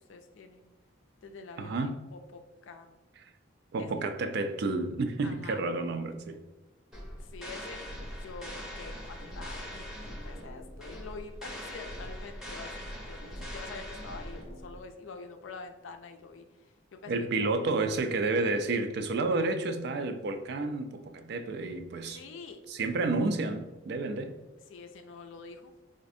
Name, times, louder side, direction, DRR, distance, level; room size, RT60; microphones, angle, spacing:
voice 1, 0.1-0.7 1.2-1.8 2.1-2.9 3.8-3.9 5.2-5.6 7.2-7.8 8.2-9.8 10.2-16.5 16.9-17.3 22.1-22.6 24.7-25.7, left 4 dB, 75° left, 6 dB, 0.4 m, -46 dB
voice 2, 1.6-2.0 3.2-3.3 3.7-6.4 17.1-22.2 22.7-24.4, right 3 dB, 55° right, 8 dB, 0.3 m, -30 dB
sound 1, 6.9-14.8, equal, ahead, 0.6 m, -41 dB
4.0 x 2.5 x 2.6 m, 1.2 s
head